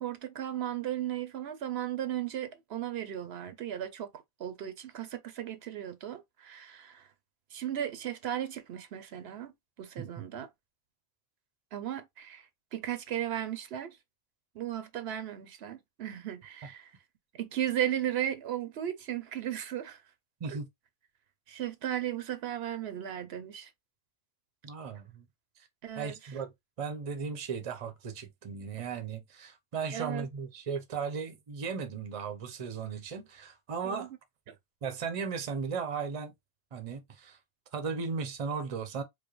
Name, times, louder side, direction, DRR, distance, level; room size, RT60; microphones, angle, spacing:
voice 1, 0.0-4.1 4.4-7.1 7.5-9.5 9.8-10.5 11.7-12.4 12.7-14.0 14.6-16.9 17.4-20.0 20.5-20.6 21.5-23.7 25.8-26.1 29.9-30.3 33.8-34.1, right 11 dB, 75° right, 0.9 m, -35 dB
voice 2, 24.6-25.2 25.6-25.7 26.0-26.5 26.8-34.1 34.8-36.3 36.7-37.4 37.7-39.0, right 5 dB, 40° right, 0.7 m, -36 dB
4.7 x 2.1 x 3.0 m
omnidirectional pair, 1.1 m